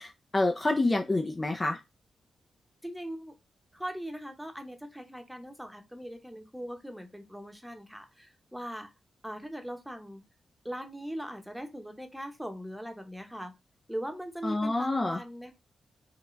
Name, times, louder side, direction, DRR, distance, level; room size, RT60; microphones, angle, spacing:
voice 1, 0.0-1.8 14.4-15.2, left 2 dB, 30° left, 0.5 m, -28 dB
voice 2, 2.8-3.3 3.7-8.9 9.2-10.2 10.6-13.5 13.9-15.5, equal, ahead, 0.9 m, -40 dB
3.7 x 2.2 x 3.1 m
supercardioid pair, 50°, 0 cm